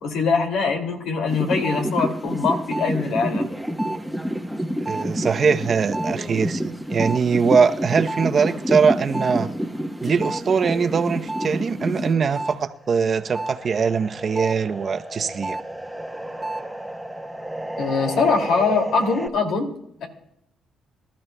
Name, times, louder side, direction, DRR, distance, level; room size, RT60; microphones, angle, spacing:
voice 1, 0.0-3.5 17.8-19.7 20.0-20.1, left 4 dB, 80° left, 2.4 m, -22 dB
sound 1, 1.3-12.6 12.9-19.3, equal, ahead, 1.1 m, -29 dB
voice 2, 4.9-9.5 10.0-15.6, right 6 dB, 45° right, 0.7 m, -22 dB
24.0 x 13.0 x 2.2 m
cardioid pair, 90°, 0 cm